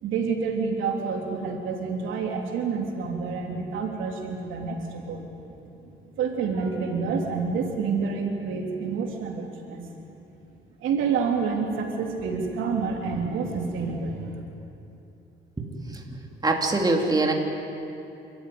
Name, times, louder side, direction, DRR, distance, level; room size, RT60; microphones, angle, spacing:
voice 1, 0.0-5.4 5.8-9.9 10.8-14.4, right 5 dB, 85° right, 1 dB, 3.3 m, -28 dB
voice 2, 15.6-16.0 16.4-17.3, right 2 dB, 20° right, 1 dB, 2.9 m, -24 dB
29.0 x 14.0 x 9.5 m, 2.8 s
cardioid pair, 90°, 20 cm